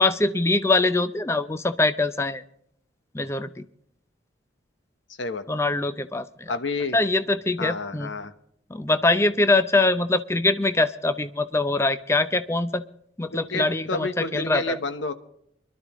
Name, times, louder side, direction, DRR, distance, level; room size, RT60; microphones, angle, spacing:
voice 1, 0.0-2.4 3.1-3.7 5.5-6.5 6.9-8.1 8.7-12.8 13.2-14.8, left 2 dB, 15° left, 12 dB, 0.5 m, -23 dB
voice 2, 5.2-5.6 6.5-7.0 7.6-8.3 13.3-15.1, left 3 dB, 80° left, 11 dB, 1.0 m, -30 dB
24.0 x 12.0 x 3.0 m, 0.70 s
head